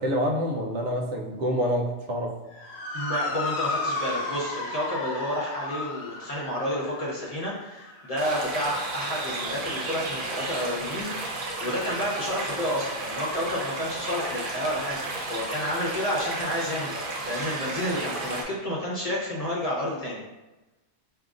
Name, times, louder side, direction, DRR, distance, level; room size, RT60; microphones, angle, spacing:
voice 1, 0.0-2.3, equal, 85° right, 0 dB, 1.0 m, -27 dB
Motor vehicle (road) / Siren, 2.5-11.1, left 3 dB, 70° left, 0.8 m, -35 dB
voice 2, 2.9-15.0 15.3-16.9 17.3-20.2, equal, 35° left, -5 dB, 0.8 m, -30 dB
sound 1, 8.2-18.4, right 2 dB, 55° right, 0.8 m, -33 dB
5.0 x 2.9 x 2.4 m, 1.1 s
omnidirectional pair, 1.2 m